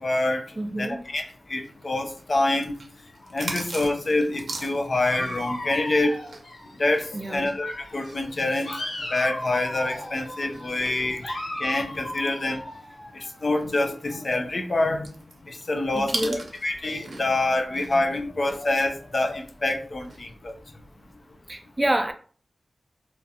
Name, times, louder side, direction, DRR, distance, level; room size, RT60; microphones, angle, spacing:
voice 1, 0.0-0.4 0.8-1.2 1.5-2.7 3.3-6.2 6.8-8.7 9.1-11.2 11.6-12.6 13.4-15.1 15.5-20.5, left 2 dB, 50° left, 0.4 m, -26 dB
voice 2, 0.6-1.0 7.1-7.5 15.9-16.4 20.9-21.0 21.5-22.1, right 1 dB, 25° right, 0.4 m, -28 dB
sound 1, 1.6-6.6 6.9-12.4 12.8-12.9 13.2-17.4 17.7-19.7 20.0-20.3, right 3 dB, 75° right, 0.6 m, -39 dB
Dog, 5.0-7.4 7.6-13.6, left 1 dB, 85° left, 0.8 m, -37 dB
2.5 x 2.2 x 2.7 m
wide cardioid pair, 75°, 0 cm